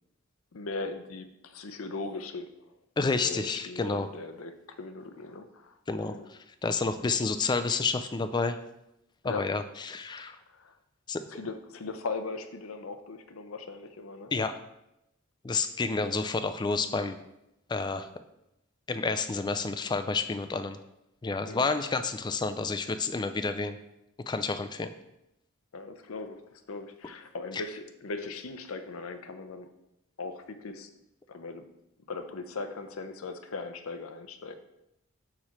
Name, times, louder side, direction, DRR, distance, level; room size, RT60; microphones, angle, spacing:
voice 1, 0.5-2.7 3.2-6.3 9.2-9.5 10.5-10.8 11.3-14.3 21.5-21.7 25.7-29.7 30.2-30.9 31.3-31.7 32.1-34.6, left 3 dB, 85° left, 8 dB, 0.6 m, -39 dB
voice 2, 3.0-4.1 5.9-6.2 6.6-8.6 9.2-9.6 9.9-10.4 11.1-11.2 14.3-14.5 15.4-17.2 17.7-18.1 18.9-20.8 21.2-23.8 24.3-24.9, left 4 dB, 20° left, 10 dB, 0.3 m, -29 dB
4.8 x 4.3 x 5.7 m, 0.86 s
head